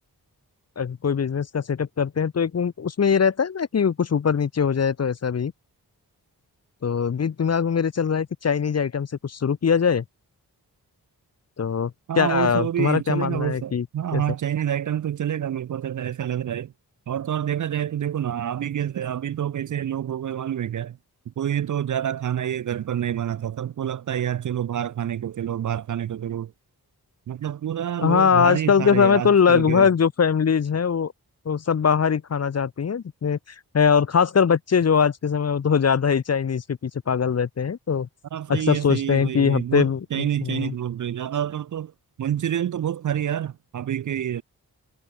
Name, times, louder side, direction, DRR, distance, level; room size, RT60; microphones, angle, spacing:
voice 1, 0.8-5.5 6.8-10.0 11.6-13.8 14.1-14.2 28.0-31.1 31.5-33.4 33.7-38.1 38.5-40.7, left 6 dB, 40° left, 0.6 m, -21 dB
voice 2, 12.1-16.7 17.1-21.0 21.3-26.5 27.3-29.9 38.3-41.9 42.2-44.4, right 10 dB, 50° right, 0.4 m, -27 dB
cardioid pair, 40°, 41 cm